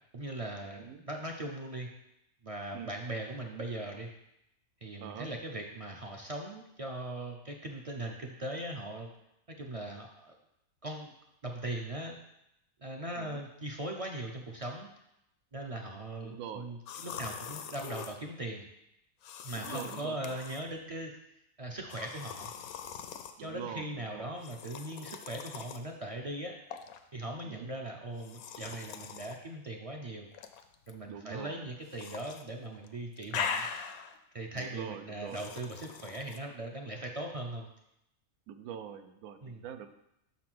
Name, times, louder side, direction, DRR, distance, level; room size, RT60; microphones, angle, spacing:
voice 1, 0.1-1.9 2.4-4.1 4.8-9.1 9.6-10.4 10.8-11.1 11.4-12.2 12.8-14.9 15.5-18.7 19.4-21.1 21.6-22.5 23.4-26.6 27.1-30.3 30.9-33.7 34.3-37.7 39.4-39.6, right 1 dB, 60° right, 1 dB, 0.3 m, -39 dB
voice 2, 5.0-5.3 13.2-13.4 16.2-16.7 19.6-20.4 23.4-24.3 27.4-27.7 31.1-31.7 34.5-35.4 38.5-39.9, right 8 dB, 90° right, 9 dB, 1.1 m, -44 dB
sound 1, 16.9-18.2 19.2-20.6 21.9-23.3 24.4-25.8 26.7-27.0 28.2-29.4 30.3-30.9 31.9-32.4 32.7-34.2 35.3-36.4, left 7 dB, 85° left, 1.0 m, -41 dB
6.0 x 4.2 x 6.0 m, 0.83 s
omnidirectional pair, 1.5 m